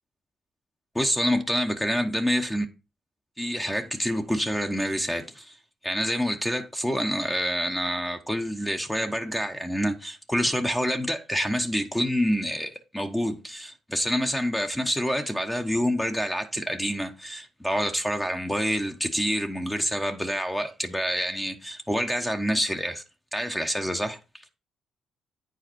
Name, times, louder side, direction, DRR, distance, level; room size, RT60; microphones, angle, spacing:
voice 1, 0.9-2.7 3.4-5.6 5.8-23.0 23.3-24.2, equal, 10° left, 1.0 m, -27 dB
9.0 x 4.7 x 4.5 m
cardioid pair, 90°, 0 cm